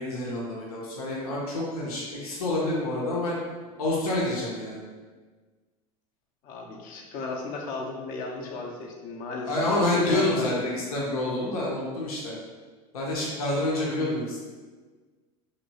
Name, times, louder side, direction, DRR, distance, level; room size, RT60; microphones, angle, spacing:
voice 1, 0.0-3.3 3.8-4.8 9.4-12.4 12.9-14.4, left 1 dB, 85° left, -4 dB, 0.8 m, -28 dB
voice 2, 6.4-10.5, left 3 dB, 50° left, 1 dB, 0.7 m, -35 dB
3.1 x 2.9 x 2.8 m, 1.4 s
hypercardioid pair, 95°, 19 cm